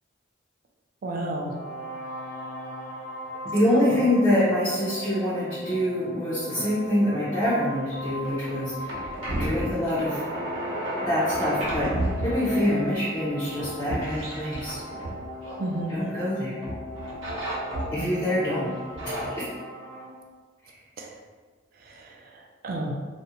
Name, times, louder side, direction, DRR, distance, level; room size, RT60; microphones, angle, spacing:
voice 1, 1.0-1.5 3.9-4.0 15.6-16.0 18.0-18.1 21.0-21.1 21.9-22.1 22.6-22.9, right 2 dB, 50° right, 1 dB, 0.3 m, -31 dB
sound 1, 1.2-20.1, equal, 75° left, 0.8 m, -39 dB
voice 2, 3.5-9.1 9.4-10.2 11.0-11.9 12.2-14.8 15.9-16.6 17.9-18.7 19.0-19.4, left 1 dB, 25° left, -10 dB, 0.5 m, -25 dB
sound 2, 7.9-16.3 16.6-18.2 18.7-19.3, right 1 dB, 70° right, 0.8 m, -32 dB
2.4 x 2.0 x 2.7 m, 1.4 s
head